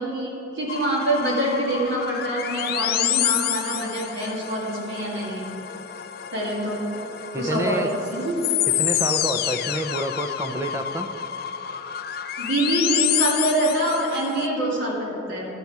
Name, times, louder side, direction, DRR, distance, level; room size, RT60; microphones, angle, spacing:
voice 1, 0.0-5.5 6.3-6.9 7.3-8.4 12.4-15.5, right 1 dB, 70° right, -4 dB, 2.1 m, -25 dB
sound 1, 0.7-14.5, left 12 dB, 50° left, 0.3 m, -28 dB
voice 2, 7.3-7.9 8.8-11.1, right 1 dB, 15° right, 6 dB, 0.5 m, -28 dB
13.0 x 5.4 x 4.6 m, 3.0 s
head